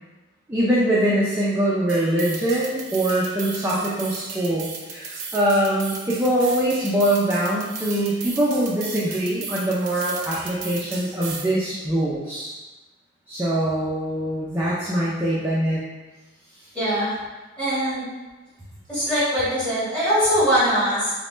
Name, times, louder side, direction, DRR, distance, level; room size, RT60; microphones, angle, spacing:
voice 1, 0.5-12.5 13.3-15.8, right 1 dB, 10° right, -8 dB, 0.4 m, -23 dB
sound 1, 1.9-11.5, right 5 dB, 75° right, 0.5 m, -36 dB
voice 2, 16.7-17.1 17.6-18.0 18.9-21.1, equal, 5° left, -11 dB, 1.4 m, -21 dB
4.0 x 2.1 x 3.1 m, 1.2 s
head